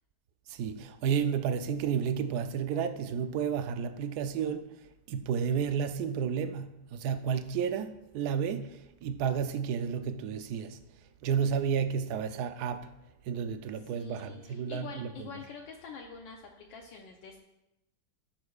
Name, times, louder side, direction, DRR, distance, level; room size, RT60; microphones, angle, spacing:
voice 1, 0.5-4.7 5.1-10.8 11.2-12.9 13.2-15.3, right 7 dB, 70° right, 1.0 m, -31 dB
voice 2, 13.8-17.4, left 5 dB, 75° left, 1.4 m, -46 dB
14.0 x 6.6 x 2.3 m
omnidirectional pair, 2.1 m